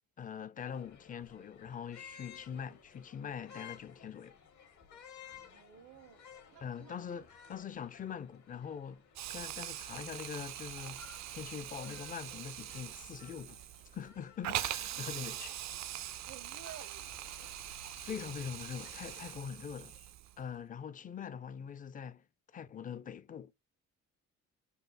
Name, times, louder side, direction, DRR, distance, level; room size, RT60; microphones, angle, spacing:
voice 1, 0.2-4.4 6.6-9.0 9.3-13.6 13.9-15.6 18.0-20.0 20.4-22.2 22.5-23.5, left 7 dB, 30° left, 0.4 m, -43 dB
sound 1, 0.7-19.3, left 8 dB, 70° left, 1.5 m, -57 dB
voice 2, 5.5-7.3 15.1-15.5 16.3-17.5, right 9 dB, 80° right, 0.8 m, -54 dB
Hiss, 9.2-20.4, right 13 dB, 65° right, 0.4 m, -42 dB
sound 2, 10.1-20.1, left 7 dB, 55° left, 0.8 m, -63 dB
4.0 x 2.5 x 4.1 m
cardioid pair, 90°, 30 cm